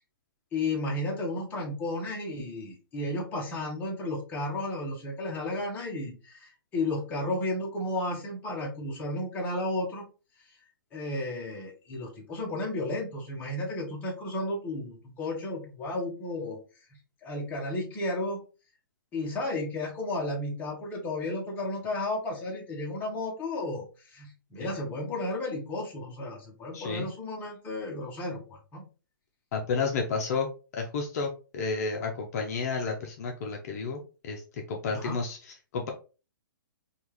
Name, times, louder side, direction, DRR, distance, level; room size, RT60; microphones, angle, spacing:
voice 1, 0.5-10.0 10.9-16.6 17.2-18.4 19.1-28.8 34.9-35.2, left 2 dB, 15° left, -2 dB, 0.8 m, -33 dB
voice 2, 26.7-27.1 29.5-30.5 30.7-35.9, left 4 dB, 45° left, 1 dB, 0.5 m, -31 dB
3.5 x 2.3 x 3.0 m, 0.34 s
hypercardioid pair, 155°, 12 cm